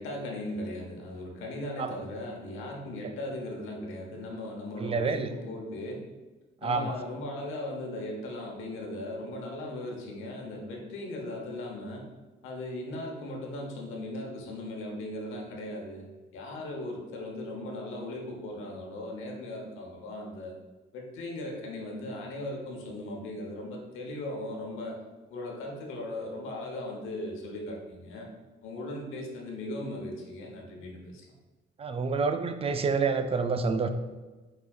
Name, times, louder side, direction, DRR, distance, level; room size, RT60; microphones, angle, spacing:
voice 1, 0.0-6.0 6.6-12.1 12.4-16.1 16.3-20.5 20.9-25.0 25.3-28.3 28.6-31.2, left 1 dB, 90° left, 0 dB, 0.9 m, -38 dB
voice 2, 4.8-5.3 6.6-7.0 31.8-33.9, right 4 dB, 30° right, 8 dB, 0.4 m, -28 dB
4.8 x 4.3 x 2.3 m, 1.2 s
cardioid pair, 90°, 20 cm